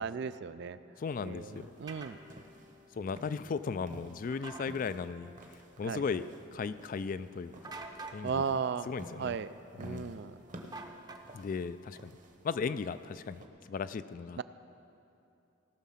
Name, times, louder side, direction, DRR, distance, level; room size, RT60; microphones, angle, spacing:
voice 1, 0.0-0.8 1.2-2.2 5.8-6.0 8.2-8.9 9.2-9.5 9.8-10.4 14.4-14.5, right 6 dB, 60° right, 14 dB, 0.3 m, -35 dB
sound 1, 0.8-11.7, equal, 85° right, 3.3 m, -62 dB
voice 2, 1.0-1.7 3.0-5.3 5.8-7.7 8.1-8.4 8.9-9.4 9.8-10.2 11.3-12.1 12.4-13.4 13.7-14.4, left 5 dB, 40° left, 14 dB, 0.3 m, -36 dB
sound 2, 1.1-13.5, right 1 dB, 40° right, 1.0 m, -54 dB
sound 3, 1.9-2.1 4.3-4.7 7.6-8.2 10.7-11.5, right 3 dB, 20° right, 0.6 m, -45 dB
18.0 x 6.2 x 5.7 m, 2.8 s
head